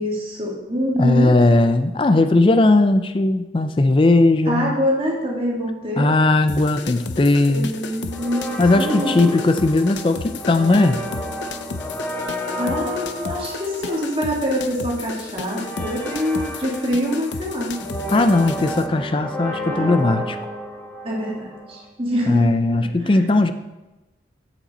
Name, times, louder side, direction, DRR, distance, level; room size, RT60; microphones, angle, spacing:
voice 1, 0.0-1.3 4.5-6.1 7.5-8.4 8.7-9.3 12.6-17.8 19.7-20.0 21.0-22.5 22.8-23.2, equal, 30° right, -3 dB, 1.9 m, -25 dB
voice 2, 1.0-4.8 6.0-7.7 8.6-11.0 18.1-20.4 22.3-23.5, left 2 dB, 30° left, 9 dB, 0.4 m, -17 dB
sound 1, 6.5-18.9, left 4 dB, 80° left, 0.5 m, -34 dB
sound 2, 8.1-21.9, equal, 10° left, 0.9 m, -32 dB
8.0 x 7.2 x 4.1 m, 1.1 s
head